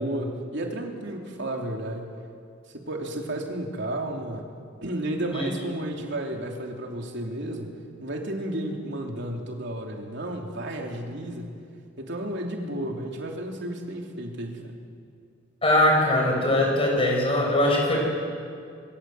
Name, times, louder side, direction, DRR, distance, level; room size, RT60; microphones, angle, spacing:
voice 1, 0.0-2.1 2.7-4.5 4.8-11.5 12.0-14.8, right 1 dB, 65° right, 1 dB, 3.3 m, -32 dB
voice 2, 15.6-18.1, left 1 dB, 30° left, 0 dB, 6.7 m, -21 dB
26.0 x 22.0 x 7.9 m, 2.3 s
head